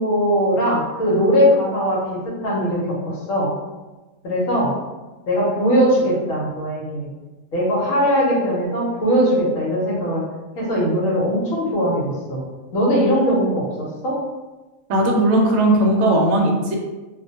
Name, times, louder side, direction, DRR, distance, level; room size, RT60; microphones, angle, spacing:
voice 1, 0.0-3.5 4.2-4.7 5.3-7.1 7.5-10.2 10.5-12.4 12.7-14.2, equal, 70° left, -5 dB, 1.1 m, -20 dB
voice 2, 14.9-16.8, right 1 dB, 65° right, 0 dB, 0.8 m, -17 dB
2.5 x 2.1 x 2.7 m, 1.2 s
omnidirectional pair, 1.5 m